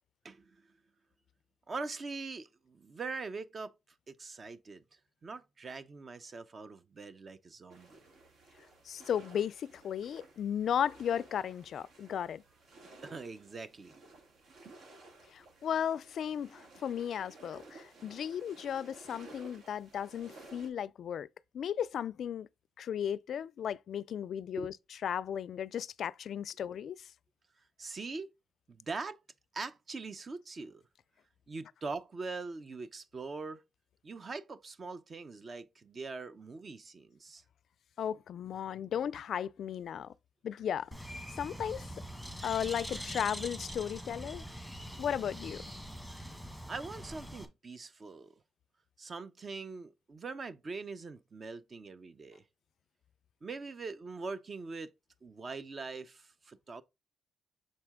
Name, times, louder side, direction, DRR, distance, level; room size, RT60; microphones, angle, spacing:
voice 1, 0.2-0.7 1.7-3.7 4.1-4.8 5.2-8.0 13.0-14.0 24.6-24.7 27.8-28.3 28.7-29.2 29.5-30.8 31.5-33.6 34.0-37.4 46.7-48.3 49.0-52.4 53.4-54.9 55.2-56.8, right 4 dB, 40° right, 0.7 m, -42 dB
sound 1, 7.7-20.7, right 2 dB, 70° right, 2.4 m, -56 dB
voice 2, 8.9-12.4 15.3-21.3 21.5-22.5 22.8-24.8 25.0-27.1 38.0-40.1 40.4-40.9 41.4-41.9 42.4-44.5 45.0-45.6, left 9 dB, 65° left, 0.3 m, -35 dB
Bird, 40.9-47.5, equal, 5° right, 1.4 m, -43 dB
6.4 x 4.3 x 3.6 m
cardioid pair, 90°, 0 cm